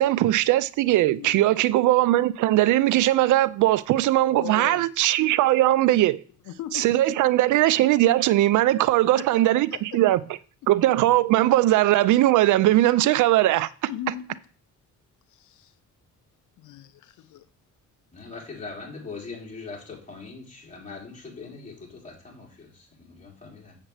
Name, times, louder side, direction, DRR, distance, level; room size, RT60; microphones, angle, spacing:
voice 1, 0.0-6.2 6.7-10.2 10.7-13.7, right 15 dB, 80° right, 0.5 m, -20 dB
voice 2, 1.0-1.6 4.3-4.9 6.5-6.9 9.2-10.0 13.9-14.4 15.3-15.8 16.6-17.5, left 12 dB, 75° left, 0.6 m, -39 dB
voice 3, 18.1-23.8, left 4 dB, 25° left, 3.4 m, -41 dB
7.3 x 7.2 x 3.3 m
cardioid pair, 90°, 30 cm